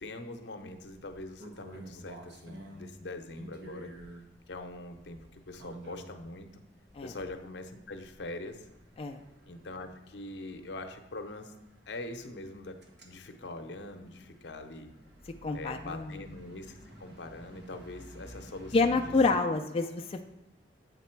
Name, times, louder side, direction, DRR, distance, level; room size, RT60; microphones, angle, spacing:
voice 1, 0.0-3.9 4.5-6.6 7.0-8.7 9.5-11.5 11.9-14.9 15.5-19.5 19.8-19.9, left 2 dB, 75° left, 6 dB, 0.7 m, -43 dB
sound 1, 0.7-6.4 6.9-7.4 7.8-19.4, right 1 dB, 75° right, 1.1 m, -51 dB
voice 2, 15.4-16.2 18.7-20.2, left 3 dB, 35° left, 4 dB, 0.3 m, -28 dB
8.1 x 4.1 x 4.4 m, 0.94 s
head